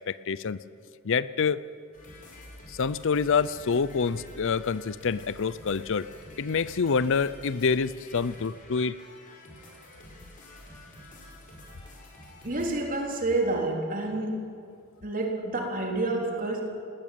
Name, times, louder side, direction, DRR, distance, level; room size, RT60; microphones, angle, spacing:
voice 1, 0.1-0.6 1.0-1.6 2.7-6.1 6.4-9.0, left 5 dB, 60° left, 17 dB, 0.5 m, -27 dB
sound 1, 1.9-12.8, left 1 dB, 35° left, 5.1 m, -49 dB
voice 2, 12.4-14.4 15.0-16.6, right 2 dB, 40° right, 1 dB, 3.6 m, -28 dB
19.5 x 19.0 x 9.2 m, 2.3 s
head